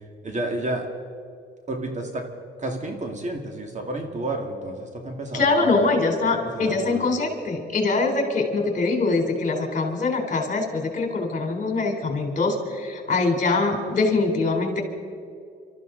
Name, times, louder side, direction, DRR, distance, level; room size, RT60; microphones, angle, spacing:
voice 1, 0.2-0.9 1.7-2.2 2.6-6.0 6.3-7.0, right 2 dB, 35° right, 3 dB, 2.2 m, -31 dB
voice 2, 5.3-14.8, left 3 dB, 40° left, 2 dB, 3.7 m, -23 dB
26.5 x 13.5 x 4.0 m, 2.3 s
cardioid pair, 90°, 20 cm